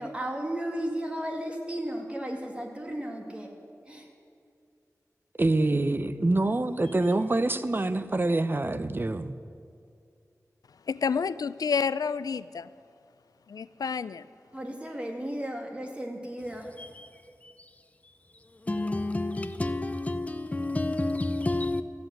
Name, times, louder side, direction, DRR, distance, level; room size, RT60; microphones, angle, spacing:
voice 1, 0.0-3.5 3.9-4.1 14.5-16.8, right 1 dB, 20° right, 2.2 m, -34 dB
voice 2, 5.4-9.3, right 2 dB, 35° right, 0.6 m, -26 dB
voice 3, 10.9-12.7 13.5-14.2, left 6 dB, 90° left, 0.4 m, -29 dB
voice 4, 18.7-21.8, left 2 dB, 25° left, 0.5 m, -29 dB
14.0 x 7.9 x 9.2 m
wide cardioid pair, 75°, 6 cm